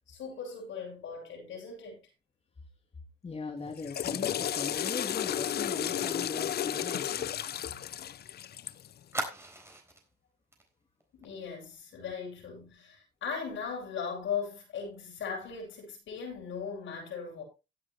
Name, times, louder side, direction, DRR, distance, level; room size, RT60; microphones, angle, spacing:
voice 1, 0.0-2.0 11.1-17.4, left 6 dB, 75° left, 7.5 m, -38 dB
voice 2, 3.2-7.3, left 3 dB, 30° left, 2.9 m, -39 dB
Water / Toilet flush, 3.7-8.9, left 10 dB, 55° left, 0.6 m, -33 dB
Fire, 4.8-8.3 8.5-8.6 9.1-10.1 10.5-10.7 11.0-11.2, right 1 dB, 15° right, 4.0 m, -42 dB
16.0 x 8.6 x 3.1 m
cardioid pair, 90°, 20 cm